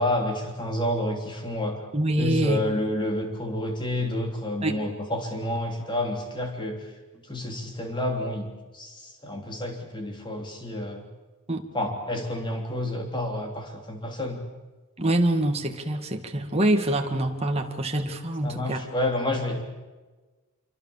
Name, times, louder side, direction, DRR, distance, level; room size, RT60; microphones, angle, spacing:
voice 1, 0.0-1.8 2.2-6.8 7.3-8.5 8.7-11.0 11.7-14.4 18.4-19.6, left 1 dB, 20° left, 3 dB, 3.3 m, -29 dB
voice 2, 1.9-2.6 4.6-4.8 11.5-11.6 15.0-18.8, right 1 dB, 30° right, 3 dB, 1.8 m, -25 dB
26.0 x 24.5 x 7.2 m, 1.3 s
head